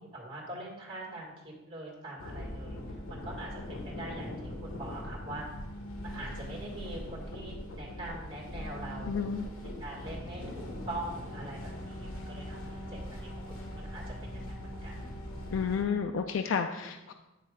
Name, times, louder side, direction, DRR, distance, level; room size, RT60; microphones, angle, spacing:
voice 1, 0.1-2.8 3.1-5.5 6.0-9.3 9.8-13.3 13.7-15.0, right 1 dB, 25° right, -3 dB, 2.1 m, -43 dB
sound 1, 2.2-15.8, left 1 dB, 90° left, 1.2 m, -41 dB
voice 2, 9.1-9.5 15.5-17.1, left 6 dB, 70° left, 6 dB, 0.4 m, -31 dB
9.4 x 3.2 x 5.0 m, 1.0 s
head